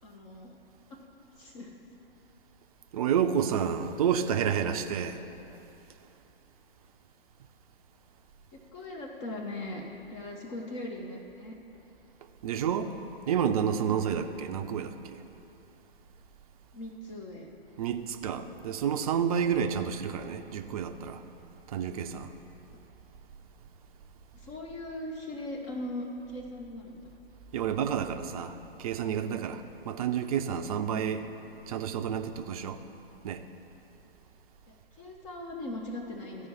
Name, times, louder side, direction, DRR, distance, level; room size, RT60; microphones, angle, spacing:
voice 1, 0.0-0.6 0.9-1.0 1.4-1.8 8.5-9.8 10.1-11.5 16.7-17.5 24.3-27.1 34.7-36.5, left 1 dB, 30° left, 0.9 m, -39 dB
voice 2, 2.9-5.2 12.4-13.0 13.3-15.2 17.8-21.2 21.7-22.3 27.5-31.3 31.7-32.8 33.2-33.4, right 8 dB, 35° right, 0.5 m, -30 dB
14.0 x 4.9 x 5.5 m
figure-of-eight pair, 120°, 31 cm